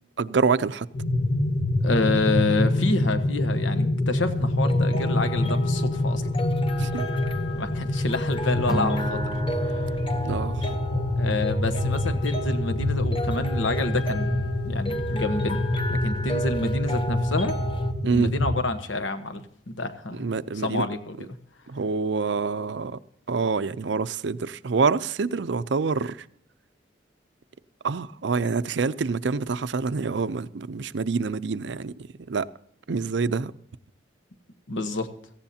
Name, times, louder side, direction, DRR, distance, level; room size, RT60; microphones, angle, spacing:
voice 1, 0.2-0.9 6.8-7.1 10.2-10.7 18.0-18.3 20.1-20.9 21.7-23.0 23.3-26.3 27.8-32.5 32.9-33.5, right 4 dB, 65° right, 0.5 m, -26 dB
sound 1, 0.9-18.6, left 1 dB, 55° left, 1.3 m, -26 dB
voice 2, 1.8-6.3 7.5-9.2 9.6-9.8 11.2-15.6 15.9-17.5 18.1-20.3 20.6-21.1 34.7-35.1, left 2 dB, 80° left, 1.2 m, -28 dB
sound 2, 4.4-17.9, left 1 dB, 25° left, 0.9 m, -34 dB
Acoustic guitar, 8.7-11.1, equal, 5° right, 0.5 m, -35 dB
17.5 x 15.0 x 2.8 m
head